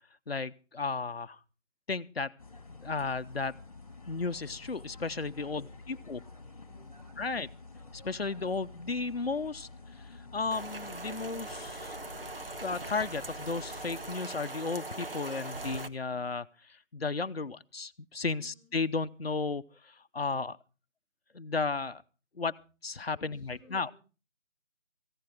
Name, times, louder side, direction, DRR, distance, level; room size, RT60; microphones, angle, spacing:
voice 1, 0.3-1.4 1.9-2.3 2.7-3.6 4.1-6.2 7.2-7.5 7.9-9.7 10.3-12.0 12.6-16.5 16.9-20.6 21.3-22.0 22.4-23.9, left 4 dB, 50° left, 10 dB, 0.8 m, -34 dB
sound 1, 2.4-14.2, left 3 dB, 30° left, 1.8 m, -50 dB
voice 2, 5.4-6.0 6.6-7.4 18.3-18.7 23.1-23.9, left 3 dB, 5° left, -1 dB, 5.4 m, -59 dB
Rain, 10.5-15.9, right 2 dB, 45° right, 1.1 m, -41 dB
18.0 x 15.5 x 3.6 m, 0.34 s
figure-of-eight pair, 165°, 38 cm